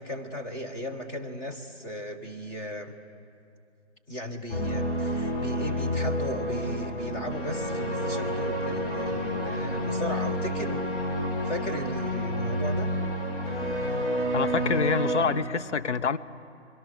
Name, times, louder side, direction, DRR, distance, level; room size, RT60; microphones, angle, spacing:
voice 1, 0.0-3.0 4.1-10.8 11.4-13.0, equal, 15° left, 3 dB, 1.3 m, -36 dB
sound 1, 4.5-15.3, equal, 50° left, 6.0 m, -29 dB
voice 2, 14.3-16.2, left 5 dB, 75° left, 13 dB, 1.0 m, -26 dB
28.5 x 22.0 x 6.6 m, 2.6 s
hypercardioid pair, 165°, 35 cm